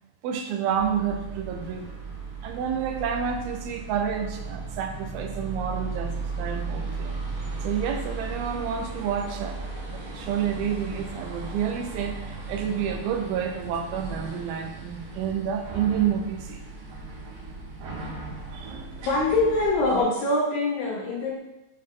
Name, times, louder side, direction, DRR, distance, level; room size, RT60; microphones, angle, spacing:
voice 1, 0.2-1.9 2.4-6.1 6.4-7.2 7.6-12.2 12.5-16.6 18.5-19.1, right 8 dB, 85° right, 4 dB, 2.6 m, -29 dB
sound 1, 0.7-20.0, right 3 dB, 65° right, 2.7 m, -36 dB
voice 2, 19.0-21.4, left 2 dB, 70° left, -3 dB, 1.9 m, -24 dB
7.3 x 3.8 x 3.7 m, 0.92 s
omnidirectional pair, 4.3 m